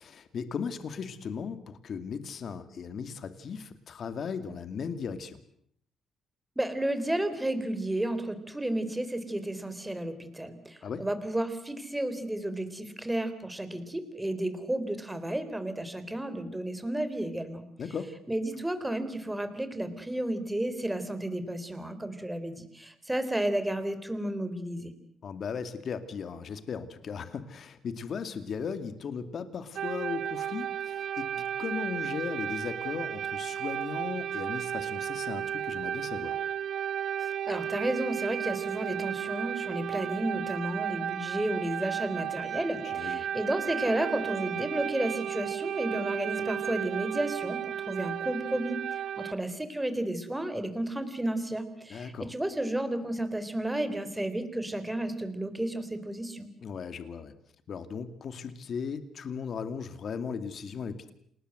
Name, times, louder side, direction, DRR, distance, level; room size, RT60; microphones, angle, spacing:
voice 1, 0.0-5.4 10.8-11.0 17.8-18.1 25.2-31.3 31.6-36.4 42.8-43.3 51.9-52.3 56.6-57.3 57.7-61.1, left 6 dB, 55° left, 11 dB, 2.4 m, -37 dB
voice 2, 6.6-17.6 18.3-24.9 37.2-47.6 47.9-48.8 49.2-56.5, right 1 dB, 10° right, 10 dB, 4.0 m, -32 dB
sound 1, 29.8-49.3, right 10 dB, 65° right, 1.0 m, -34 dB
28.5 x 19.5 x 8.0 m, 0.68 s
cardioid pair, 90°, 0 cm